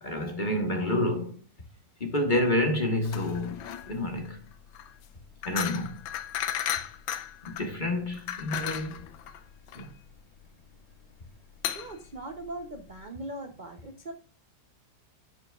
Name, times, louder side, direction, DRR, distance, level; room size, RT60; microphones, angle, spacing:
voice 1, 0.0-1.4 2.0-3.6 3.9-4.4 5.4-6.0 7.4-9.0 9.7-9.9, left 1 dB, 30° left, 1.2 m, -28 dB
sound 1, 3.0-13.0, left 10 dB, 80° left, 1.5 m, -36 dB
voice 2, 11.7-14.1, right 1 dB, 65° right, 0.4 m, -40 dB
10.5 x 5.9 x 2.4 m
omnidirectional pair, 2.1 m